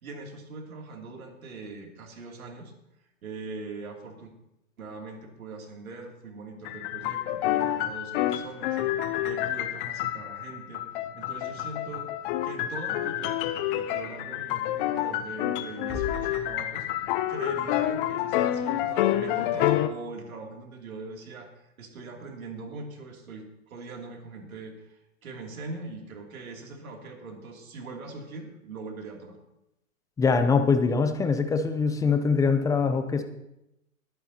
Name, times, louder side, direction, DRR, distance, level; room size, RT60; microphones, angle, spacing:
voice 1, 0.0-2.7 3.2-4.3 4.8-8.8 9.2-10.9 11.1-12.1 12.4-29.4, right 3 dB, 70° right, 1 dB, 3.0 m, -42 dB
sound 1, 6.6-19.9, left 12 dB, 40° left, 0.8 m, -28 dB
Bass drum, 15.9-17.3, left 3 dB, 10° right, 3.7 m, -39 dB
voice 2, 30.2-33.2, left 5 dB, 10° left, 8 dB, 0.6 m, -23 dB
21.5 x 9.2 x 2.9 m, 0.88 s
hypercardioid pair, 120°, 43 cm